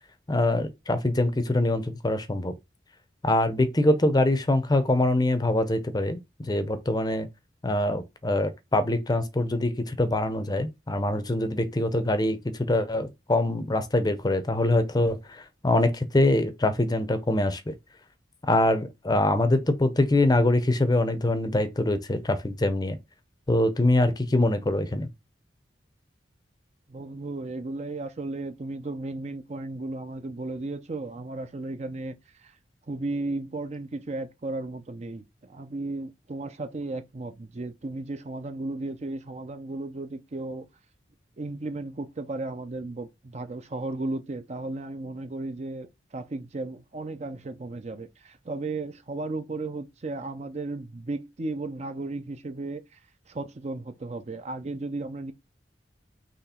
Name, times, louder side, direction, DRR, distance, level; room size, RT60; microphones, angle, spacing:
voice 1, 0.3-2.5 3.2-7.3 7.6-17.7 18.4-23.0 23.5-25.1, left 1 dB, 20° left, 0.6 m, -24 dB
voice 2, 26.9-32.2 32.4-32.5 32.9-40.7 41.4-53.0 53.3-55.3, right 2 dB, 35° right, 0.5 m, -35 dB
4.2 x 3.0 x 4.2 m
head